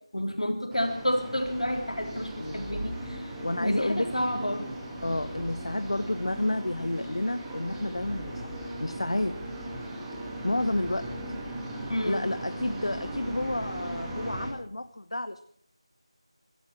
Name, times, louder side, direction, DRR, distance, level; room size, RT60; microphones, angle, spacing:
voice 1, 0.1-3.3 3.6-4.7 11.9-12.2, equal, 90° left, 4 dB, 3.6 m, -30 dB
sound 1, 0.7-14.5, right 1 dB, 5° right, 1.6 m, -38 dB
voice 2, 2.4-2.8 3.4-4.1 5.0-8.5 8.8-9.3 10.4-11.0 11.6-15.4, left 1 dB, 70° left, 11 dB, 0.9 m, -30 dB
17.0 x 12.5 x 6.0 m, 0.62 s
figure-of-eight pair, 170°, 3 cm